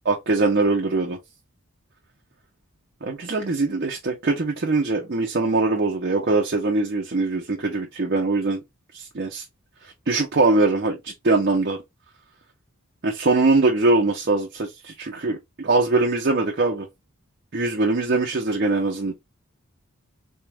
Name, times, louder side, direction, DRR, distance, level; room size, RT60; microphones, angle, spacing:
voice 1, 0.1-1.2 3.0-8.6 8.9-9.4 10.1-11.8 13.0-16.9 17.5-19.1, right 3 dB, 45° right, 0.7 m, -22 dB
3.5 x 3.4 x 2.2 m
head